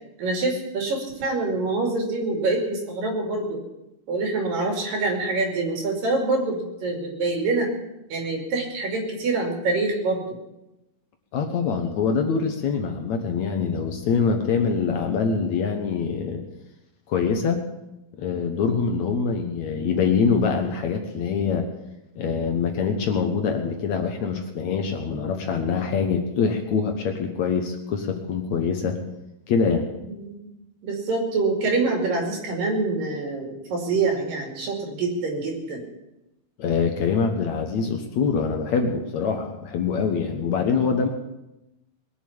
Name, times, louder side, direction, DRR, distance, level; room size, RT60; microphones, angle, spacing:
voice 1, 0.2-3.6 4.1-7.7 8.1-10.2 30.1-30.4 30.8-35.8 40.4-40.6, right 3 dB, 65° right, 2 dB, 4.2 m, -25 dB
voice 2, 11.3-16.4 17.1-17.6 18.2-21.7 22.2-29.0 29.5-29.9 36.6-41.1, left 5 dB, 60° left, 4 dB, 2.1 m, -24 dB
21.0 x 7.0 x 8.7 m, 0.93 s
omnidirectional pair, 4.3 m